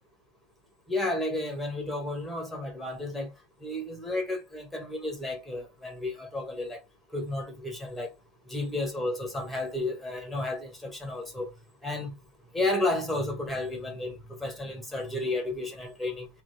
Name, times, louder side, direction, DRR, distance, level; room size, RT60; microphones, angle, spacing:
voice 1, 0.9-3.3 3.6-6.8 7.1-8.1 8.5-11.5 11.8-12.1 12.5-16.3, left 2 dB, ahead, 1.5 m, -32 dB
4.3 x 3.6 x 3.4 m
omnidirectional pair, 2.1 m